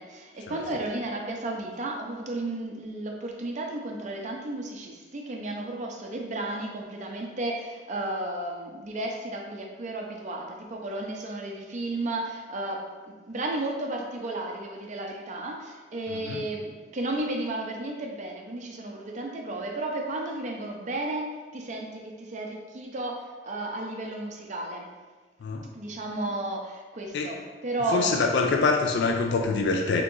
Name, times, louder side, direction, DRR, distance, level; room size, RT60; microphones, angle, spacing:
voice 1, 0.0-24.9 25.7-28.1 28.4-28.5, right 2 dB, 40° right, 1 dB, 0.5 m, -33 dB
voice 2, 27.9-30.0, left 4 dB, 65° left, 3 dB, 0.3 m, -25 dB
3.6 x 2.9 x 3.7 m, 1.4 s
head